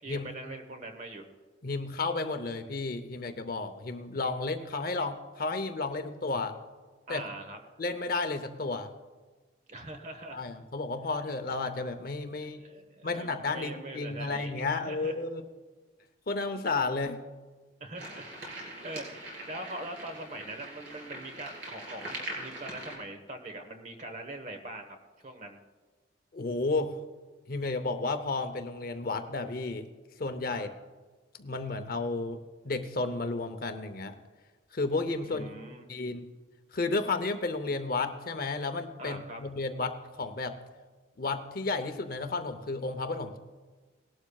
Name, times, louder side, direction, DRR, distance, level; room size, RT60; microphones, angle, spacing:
voice 1, 0.0-1.3 7.1-7.6 9.7-10.4 12.4-15.2 17.8-25.0 25.2-25.6 30.5-30.6 35.2-35.9 39.0-39.4, right 2 dB, 35° right, 6 dB, 1.1 m, -42 dB
voice 2, 1.6-6.6 7.1-7.2 7.8-8.9 10.3-12.6 13.0-15.5 16.3-17.2 26.3-27.0 27.5-29.9 30.2-30.7 31.4-32.4 32.6-34.2 34.7-35.5 35.9-36.3 36.7-40.6 41.2-43.4, left 3 dB, 45° left, 9 dB, 0.7 m, -32 dB
sound 1, 17.9-23.0, right 1 dB, 60° right, 4.2 m, -42 dB
18.5 x 12.0 x 2.3 m, 1.3 s
head